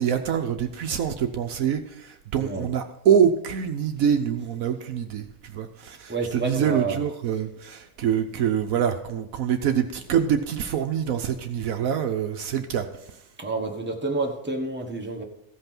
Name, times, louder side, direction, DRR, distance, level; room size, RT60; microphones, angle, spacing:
voice 1, 0.0-12.9, right 8 dB, 70° right, 7 dB, 1.1 m, -25 dB
voice 2, 2.3-2.7 6.1-7.0 13.4-15.2, right 3 dB, 10° right, 1 dB, 1.2 m, -29 dB
15.0 x 5.6 x 5.9 m, 0.81 s
omnidirectional pair, 1.6 m